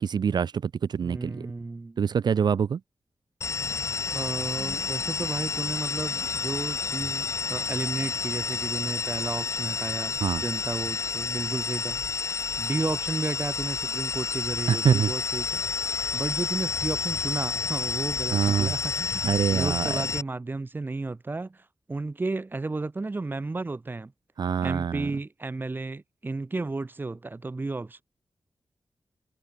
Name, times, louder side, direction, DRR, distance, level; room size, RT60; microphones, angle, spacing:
voice 1, 0.0-1.4 2.0-2.8 10.2-10.4 14.7-15.1 18.3-18.7 19.2-20.0 24.4-25.1, right 7 dB, 70° right, 0.5 m, -25 dB
voice 2, 1.0-2.0 4.1-12.3 12.6-15.6 16.1-24.1 24.6-28.0, right 3 dB, 25° right, 2.2 m, -33 dB
sound 1, 3.4-20.2, left 5 dB, 40° left, 0.6 m, -30 dB
wide cardioid pair, 160°, 8 cm